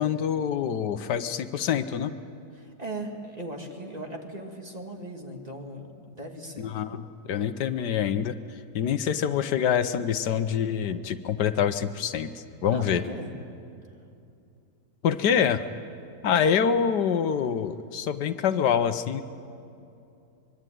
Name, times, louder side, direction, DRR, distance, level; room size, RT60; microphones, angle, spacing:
voice 1, 0.0-2.1 6.6-8.4 8.7-13.0 15.0-15.6 16.2-19.2, left 8 dB, 80° left, 10 dB, 1.5 m, -26 dB
voice 2, 2.5-6.7 12.7-13.3, right 1 dB, 25° right, 1 dB, 2.5 m, -38 dB
24.5 x 23.0 x 9.3 m, 2.6 s
omnidirectional pair, 1.8 m